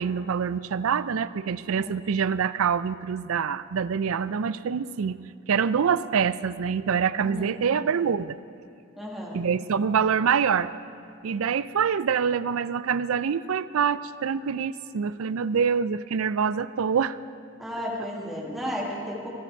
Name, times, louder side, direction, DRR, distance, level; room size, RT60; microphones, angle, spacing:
voice 1, 0.0-5.2 5.5-8.4 9.3-10.7 11.2-17.2, right 6 dB, 70° right, 16 dB, 0.4 m, -25 dB
voice 2, 9.0-9.4 17.6-19.3, equal, ahead, -4 dB, 2.1 m, -33 dB
22.0 x 11.0 x 4.6 m, 2.5 s
head